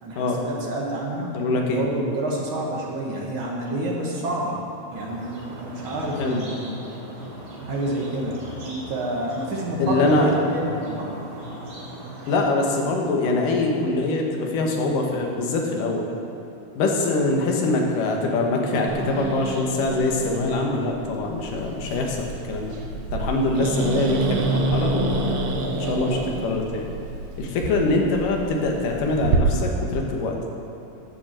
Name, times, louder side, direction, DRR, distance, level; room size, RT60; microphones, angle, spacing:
voice 1, 0.0-1.3 1.7-4.6 4.9-6.7 7.7-8.4 8.6-11.2, right 1 dB, 50° right, -2 dB, 1.6 m, -28 dB
voice 2, 1.3-1.8 6.2-6.4 9.8-10.3 12.3-16.1 16.8-22.8 23.1-25.4 25.8-26.9 27.4-30.4, left 2 dB, 65° left, 1 dB, 2.7 m, -23 dB
sound 1, 4.9-12.4, right 1 dB, 70° right, 4.8 m, -38 dB
Growling, 18.9-29.4, right 3 dB, 85° right, 1.4 m, -28 dB
12.0 x 7.1 x 7.6 m, 3.0 s
omnidirectional pair, 4.4 m